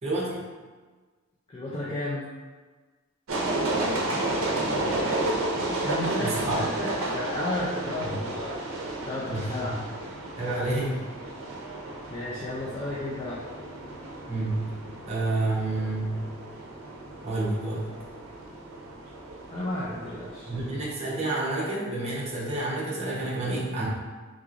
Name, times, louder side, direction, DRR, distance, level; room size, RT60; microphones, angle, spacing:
voice 1, 0.0-0.4 6.2-6.7 8.0-8.2 9.3-9.8 10.4-11.0 14.3-14.7 15.1-16.2 17.2-17.9 20.5-23.9, right 2 dB, 30° right, -6 dB, 0.7 m, -29 dB
voice 2, 1.5-2.3 5.7-8.6 9.1-9.7 10.5-10.7 12.1-13.5 19.5-20.5, left 1 dB, 25° left, -7 dB, 0.4 m, -33 dB
sound 1, 3.3-20.9, right 2 dB, 75° right, 0.6 m, -32 dB
3.7 x 2.9 x 2.5 m, 1.4 s
head